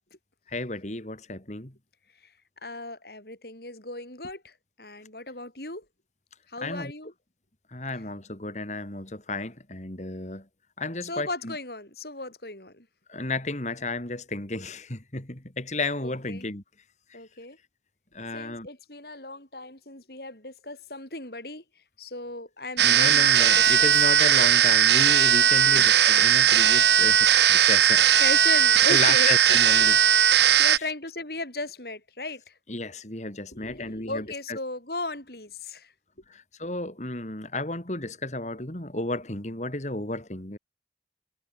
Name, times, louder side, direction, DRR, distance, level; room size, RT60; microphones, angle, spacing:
voice 1, 0.5-1.7 6.6-6.9 7.7-10.4 10.8-11.5 13.1-16.6 18.1-18.7 22.8-28.2 28.9-30.8 32.7-34.6 36.3-40.6, left 2 dB, 40° left, 2.9 m, -33 dB
voice 2, 2.6-5.8 6.5-7.1 11.0-12.9 16.0-16.4 17.1-17.6 18.3-21.6 22.0-23.9 25.7-25.9 28.2-29.4 30.6-32.5 33.5-35.9, left 2 dB, 55° left, 6.3 m, -36 dB
sound 1, 22.8-30.8, right 10 dB, 70° right, 1.9 m, -18 dB
head